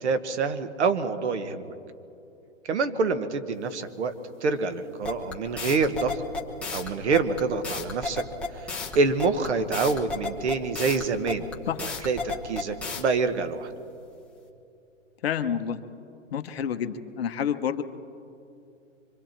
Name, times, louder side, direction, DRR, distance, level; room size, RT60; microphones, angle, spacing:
voice 1, 0.0-1.7 2.6-4.1 4.4-6.2 6.7-8.2 8.5-8.7 8.9-11.5 11.8-13.7, right 4 dB, 60° right, 10 dB, 1.5 m, -26 dB
sound 1, 5.0-13.0, left 4 dB, 5° left, 1.0 m, -32 dB
voice 2, 15.2-15.8 16.3-17.8, left 8 dB, 50° left, 9 dB, 1.0 m, -28 dB
25.0 x 25.0 x 4.5 m, 2.7 s
hypercardioid pair, 155°, 39 cm